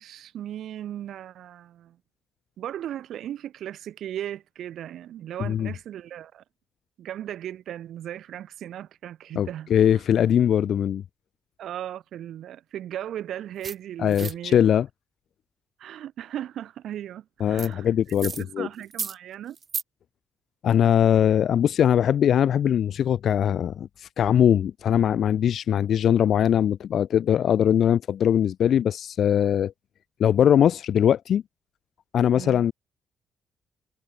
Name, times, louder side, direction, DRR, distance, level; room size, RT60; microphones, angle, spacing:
voice 1, 0.0-2.0 2.6-6.4 7.0-10.0 11.6-14.6 15.8-17.9 18.2-19.6 27.5-27.6 32.3-32.6, right 11 dB, 75° right, 2.8 m, -37 dB
voice 2, 9.3-11.0 14.0-14.9 17.4-18.7 20.6-29.7 30.2-31.4 32.1-32.7, left 9 dB, 65° left, 0.5 m, -21 dB
sound 1, 13.6-13.7 14.1-14.3 17.6-17.7 18.1-18.4 18.8-19.1 19.5-19.8, right 6 dB, 45° right, 2.7 m, -33 dB
cardioid pair, 90°, 0 cm